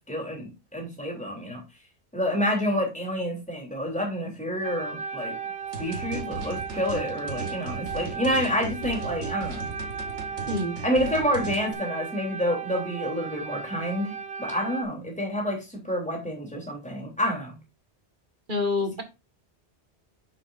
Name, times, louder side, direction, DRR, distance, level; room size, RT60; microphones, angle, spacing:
voice 1, 0.1-1.6 2.1-5.4 5.8-9.7 10.8-17.6, equal, 5° left, 0 dB, 3.5 m, -28 dB
sound 1, 4.6-14.8, right 6 dB, 60° right, 1.3 m, -36 dB
sound 2, 5.7-11.7, right 3 dB, 80° right, 1.8 m, -37 dB
voice 2, 10.5-10.8 18.5-19.0, left 2 dB, 45° right, 6 dB, 2.0 m, -27 dB
10.0 x 6.5 x 2.6 m, 0.26 s
omnidirectional pair, 1.2 m